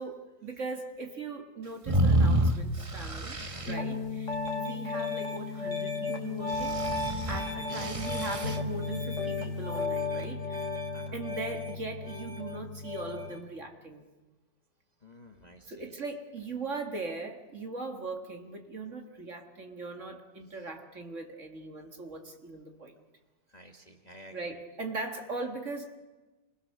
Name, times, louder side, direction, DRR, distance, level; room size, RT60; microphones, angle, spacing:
voice 1, 0.0-3.4 3.6-6.8 7.3-10.7 11.1-14.0 15.7-22.9 24.3-26.0, right 3 dB, 40° right, 4 dB, 2.1 m, -39 dB
sound 1, 1.9-3.7 6.5-8.6, right 1 dB, 25° right, 0.9 m, -28 dB
Piano, 3.7-13.4, left 3 dB, 40° left, 2.7 m, -34 dB
voice 2, 15.0-15.9 23.5-24.6, left 1 dB, 25° left, 3 dB, 1.5 m, -51 dB
27.0 x 20.0 x 6.6 m, 1.2 s
omnidirectional pair, 2.0 m